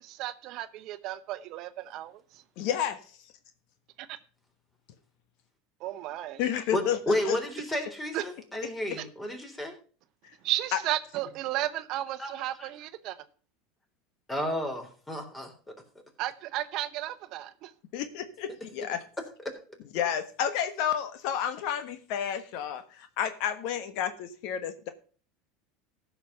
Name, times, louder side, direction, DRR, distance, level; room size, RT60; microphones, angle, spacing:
voice 1, 0.0-2.1 4.0-4.2 5.8-6.4 8.1-8.2 10.4-13.2 16.2-17.7, right 14 dB, 55° right, 0.8 m, -33 dB
voice 2, 2.6-3.0 6.4-7.4 10.7-10.8 17.9-19.0 19.9-24.9, left 9 dB, 65° left, 1.2 m, -31 dB
voice 3, 6.7-9.7 12.2-12.7 14.3-15.5, left 1 dB, 15° left, 3.7 m, -32 dB
14.5 x 5.8 x 5.5 m
hypercardioid pair, 90°, 0 cm